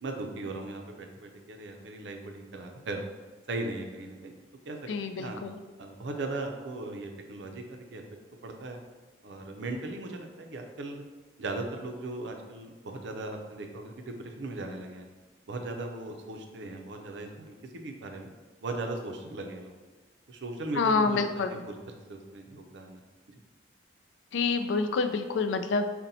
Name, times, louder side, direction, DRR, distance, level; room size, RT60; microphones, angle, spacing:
voice 1, 0.0-3.0 3.5-4.3 4.7-4.8 5.1-5.4 5.8-8.0 8.4-8.8 9.2-11.0 11.4-15.1 15.5-18.3 18.6-19.7 20.3-21.8 22.1-23.0, right 2 dB, 75° right, 4 dB, 0.5 m, -38 dB
voice 2, 4.9-5.6 20.8-21.5 24.3-25.8, left 4 dB, 80° left, 8 dB, 0.3 m, -27 dB
4.0 x 2.1 x 4.0 m, 1.3 s
head